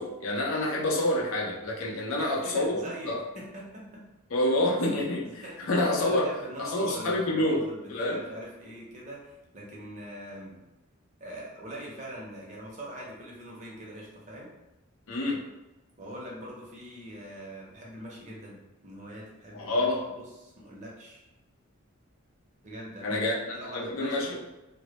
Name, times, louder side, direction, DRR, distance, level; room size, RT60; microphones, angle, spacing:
voice 1, 0.0-3.2 4.3-6.2 6.6-7.6 7.9-8.2 15.1-15.4 19.5-20.0 23.0-23.4 23.7-24.4, left 1 dB, 75° left, -3 dB, 0.5 m, -27 dB
voice 2, 2.2-3.8 5.4-5.7 6.0-10.6 11.2-14.5 16.0-21.2 22.6-24.4, right 1 dB, 35° right, -4 dB, 0.5 m, -42 dB
2.1 x 2.0 x 2.8 m, 1.0 s
head